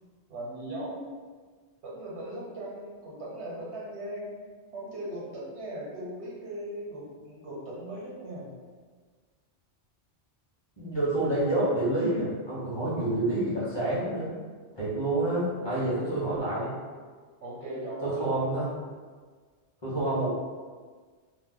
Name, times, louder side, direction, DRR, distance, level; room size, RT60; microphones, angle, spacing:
voice 1, 0.3-1.0 1.8-4.3 4.7-8.5 15.6-16.1 17.4-18.5, right 1 dB, 75° right, -5 dB, 1.2 m, -38 dB
voice 2, 10.8-14.3 14.8-16.7 18.0-18.7 19.8-20.3, right 2 dB, 25° left, -8 dB, 0.9 m, -28 dB
2.7 x 2.1 x 3.7 m, 1.5 s
omnidirectional pair, 1.1 m